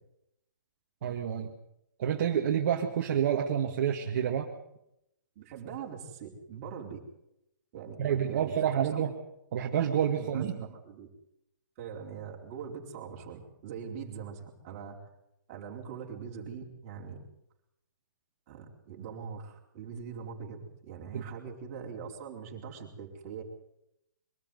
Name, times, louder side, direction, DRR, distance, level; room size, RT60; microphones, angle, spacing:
voice 1, 1.0-1.5 2.0-4.5 8.0-9.1 9.5-10.7 21.1-21.2, right 9 dB, 40° right, 1 dB, 2.0 m, -28 dB
voice 2, 5.4-7.0 7.7-9.1 10.2-11.1 11.8-15.0 15.5-17.2 18.5-23.4, right 6 dB, 25° right, -1 dB, 4.5 m, -42 dB
23.5 x 13.5 x 9.4 m, 0.81 s
hypercardioid pair, 170°, 11 cm